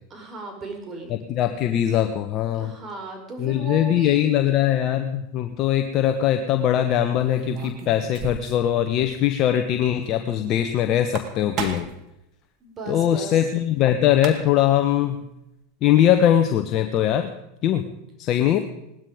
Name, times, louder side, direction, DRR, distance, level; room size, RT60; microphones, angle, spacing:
voice 1, 0.1-1.2 2.5-4.5 12.6-13.4, right 2 dB, 30° right, 3 dB, 4.7 m, -36 dB
voice 2, 1.1-2.7 3.4-11.8 12.9-15.2 15.8-17.3 17.6-17.8 18.2-18.6, left 11 dB, 45° left, 7 dB, 1.2 m, -21 dB
sound 1, 5.5-5.8 7.3-8.7 9.0-9.1 9.4-9.5 10.9-12.0 13.8-13.9 14.1-14.7, right 7 dB, 45° right, 2.3 m, -34 dB
19.0 x 13.0 x 5.1 m, 0.84 s
hypercardioid pair, 100°, 0 cm